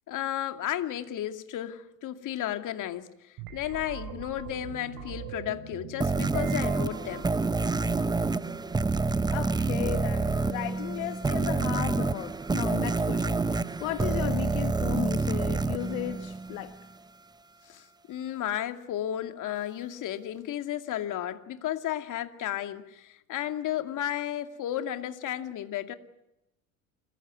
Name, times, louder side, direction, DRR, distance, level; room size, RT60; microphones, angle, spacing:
voice 1, 0.1-3.1 3.5-7.3 17.7-25.9, left 12 dB, 45° left, 8 dB, 2.4 m, -33 dB
sound 1, 3.4-10.3, right 8 dB, 55° right, 6.6 m, -44 dB
sound 2, 6.0-16.8, right 3 dB, 10° right, 0.8 m, -28 dB
voice 2, 9.3-16.7, left 15 dB, 70° left, 9 dB, 1.6 m, -35 dB
28.0 x 16.0 x 9.7 m, 0.88 s
hypercardioid pair, 85°, 42 cm